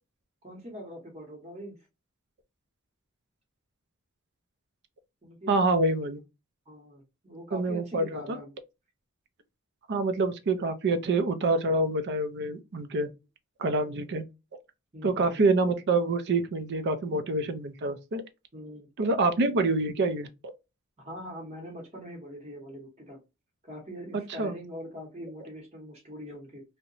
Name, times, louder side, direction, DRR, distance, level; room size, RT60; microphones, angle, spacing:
voice 1, 0.4-1.8 5.2-5.5 6.7-8.5 14.9-15.4 18.5-18.9 21.0-23.2 23.6-26.6, equal, 30° right, 0.9 m, -42 dB
voice 2, 5.5-6.2 7.5-8.4 9.9-13.1 13.6-14.3 15.0-18.2 19.0-20.5 24.4-24.5, right 2 dB, 55° right, 0.4 m, -26 dB
2.8 x 2.1 x 2.5 m
head